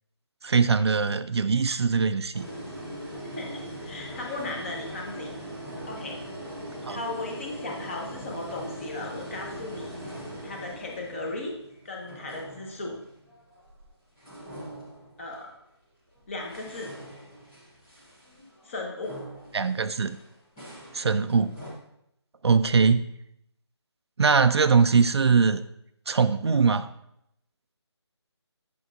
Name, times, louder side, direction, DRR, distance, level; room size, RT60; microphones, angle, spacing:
voice 1, 0.4-2.5 6.8-7.0 19.5-20.2 20.9-21.5 22.4-23.1 24.2-25.6 26.1-26.9, right 5 dB, 65° right, 12 dB, 0.4 m, -22 dB
sound 1, 2.3-13.9 14.2-15.6 16.1-21.7, equal, 5° left, 0.4 m, -41 dB
voice 2, 3.2-5.3 5.9-6.2 6.9-11.5 11.8-13.0 15.2-15.5 16.3-16.9 18.6-19.2, left 2 dB, 25° left, 0 dB, 1.1 m, -36 dB
8.0 x 6.3 x 2.4 m, 0.76 s
figure-of-eight pair, 160°, 15 cm